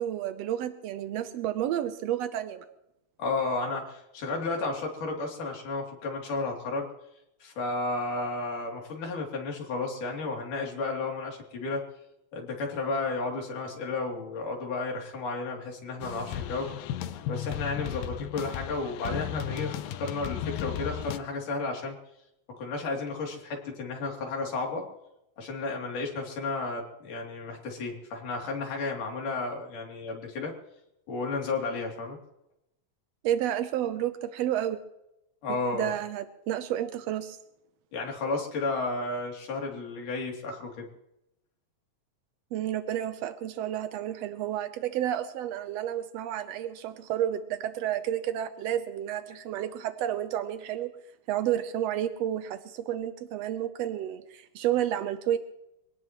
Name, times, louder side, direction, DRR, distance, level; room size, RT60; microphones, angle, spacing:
voice 1, 0.0-2.7 33.2-34.8 35.7-37.4 42.5-50.9 51.3-55.4, right 11 dB, 85° right, 9 dB, 1.4 m, -31 dB
voice 2, 3.2-6.9 7.4-11.8 12.3-16.7 17.3-22.0 22.6-24.9 25.4-30.5 31.1-32.2 35.4-35.9 37.9-40.8, left 3 dB, 65° left, 0 dB, 4.5 m, -32 dB
sound 1, 16.0-21.2, left 10 dB, 85° left, 2.5 m, -35 dB
24.5 x 18.0 x 3.1 m, 0.86 s
omnidirectional pair, 4.0 m